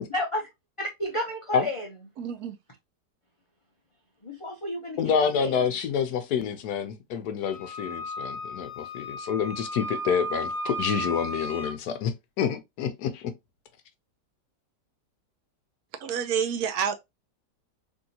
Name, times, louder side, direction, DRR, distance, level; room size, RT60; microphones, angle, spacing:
voice 1, 0.1-0.5 0.8-1.9 4.2-5.6, left 1 dB, 55° left, 0.3 m, -32 dB
voice 2, 2.2-2.6 16.0-16.9, right 7 dB, 75° right, 1.0 m, -28 dB
voice 3, 5.0-13.3, left 7 dB, 70° left, 1.0 m, -28 dB
Wind instrument woodwind instrument, 7.4-11.8, equal, 35° left, 1.3 m, -34 dB
3.5 x 2.7 x 2.7 m
omnidirectional pair, 1.8 m